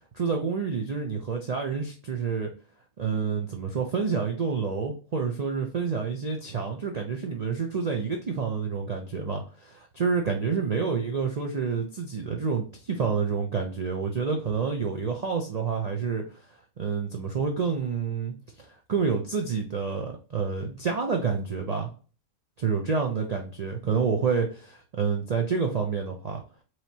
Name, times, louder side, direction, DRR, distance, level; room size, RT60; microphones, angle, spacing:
voice 1, 0.1-2.5 3.0-16.2 16.8-21.9 22.6-26.4, right 5 dB, 60° right, 2 dB, 0.4 m, -28 dB
4.8 x 2.9 x 2.7 m, 0.36 s
omnidirectional pair, 1.5 m